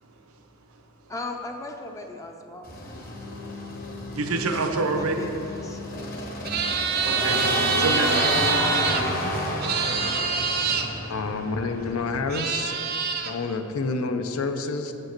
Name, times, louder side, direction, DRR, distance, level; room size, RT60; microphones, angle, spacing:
voice 1, 1.1-3.2 4.9-6.1, left 2 dB, 15° left, 3 dB, 0.4 m, -38 dB
sound 1, 2.6-12.3, left 1 dB, 40° left, 1.1 m, -30 dB
voice 2, 4.1-5.3 7.0-8.2, right 3 dB, 85° right, 5 dB, 0.7 m, -27 dB
sound 2, 6.4-9.0 9.6-10.8 11.9-12.0 12.3-13.3, right 6 dB, 45° right, 0.5 m, -25 dB
voice 3, 11.1-12.7 13.2-14.9, left 3 dB, 80° left, 8 dB, 0.5 m, -28 dB
8.1 x 5.2 x 5.9 m, 2.8 s
head